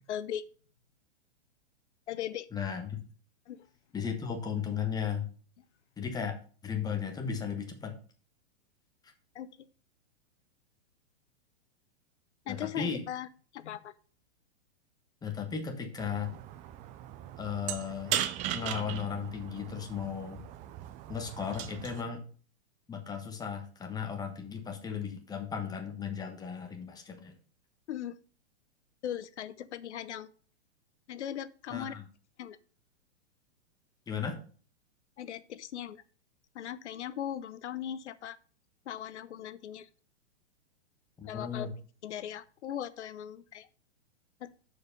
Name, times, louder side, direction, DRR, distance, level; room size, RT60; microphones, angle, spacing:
voice 1, 0.1-0.4 2.1-2.5 3.5-3.7 9.3-9.5 12.5-13.3 13.5-13.9 27.9-28.2 29.0-30.3 31.1-31.9 32.4-32.6 35.2-36.0 36.5-38.4 38.9-39.9 41.3-41.7 42.0-43.7 44.4-44.5, left 10 dB, 85° left, 16 dB, 0.8 m, -38 dB
voice 2, 2.5-3.0 3.9-5.3 6.0-6.4 6.6-7.9 12.5-13.0 15.2-16.4 17.4-18.2 18.5-20.5 21.1-22.2 22.9-27.3 31.7-32.0 34.1-34.4 41.2-41.7, left 7 dB, 10° left, 4 dB, 1.2 m, -35 dB
sound 1, 16.0-22.0, right 12 dB, 20° right, 0.5 m, -38 dB
6.5 x 4.9 x 6.5 m, 0.41 s
hypercardioid pair, 140°, 34 cm